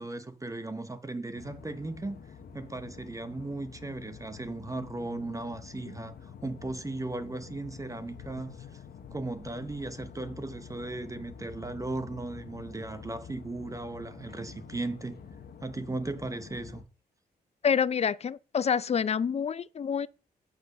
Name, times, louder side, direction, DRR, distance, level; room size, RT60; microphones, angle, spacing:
voice 1, 0.0-2.2 2.5-8.8 9.1-15.2 15.6-16.8, right 2 dB, 20° right, 0.8 m, -37 dB
sound 1, 1.3-16.8, left 6 dB, 70° left, 1.2 m, -48 dB
voice 2, 17.6-20.1, left 7 dB, 40° left, 0.4 m, -27 dB
8.4 x 4.2 x 6.5 m
cardioid pair, 65°, 17 cm